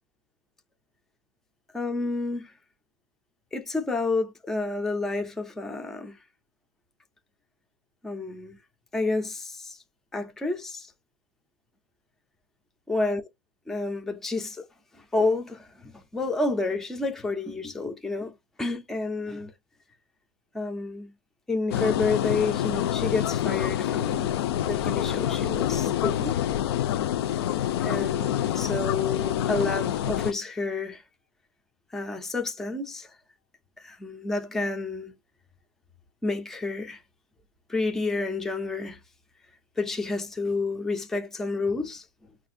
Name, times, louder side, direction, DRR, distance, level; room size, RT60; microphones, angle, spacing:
voice 1, 1.7-2.5 3.5-6.2 8.0-8.6 8.9-9.8 10.1-10.9 12.9-13.2 13.7-14.7 15.1-19.5 20.5-21.1 21.5-24.3 24.7-26.4 27.8-31.0 31.9-33.1 33.8-35.1 36.2-37.0 37.7-39.0 39.8-42.0, left 3 dB, 5° left, 0.3 m, -29 dB
sound 1, 21.7-30.3, left 11 dB, 75° left, 0.4 m, -27 dB
5.8 x 2.4 x 2.5 m
supercardioid pair, 165°, 13 cm